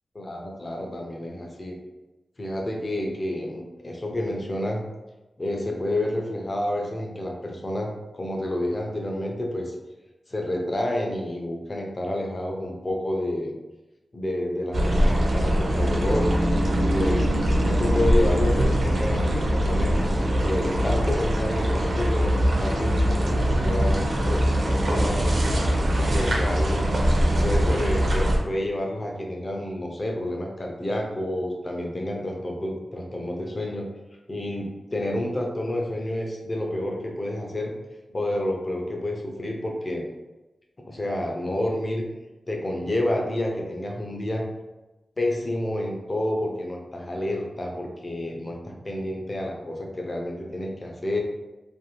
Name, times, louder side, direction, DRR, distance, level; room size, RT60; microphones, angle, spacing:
voice 1, 0.1-1.8 2.4-4.8 5.4-9.7 10.3-13.5 14.1-16.3 16.7-17.2 17.6-19.9 20.4-25.4 26.1-26.9 27.4-33.9 34.3-37.7 38.1-40.1 40.8-42.0 42.5-44.4 45.2-51.2, left 1 dB, 30° left, 0 dB, 0.5 m, -29 dB
sound 1, 14.7-28.4, equal, 60° right, 0.5 m, -22 dB
2.6 x 2.3 x 3.0 m, 1.1 s
wide cardioid pair, 140°, 0 cm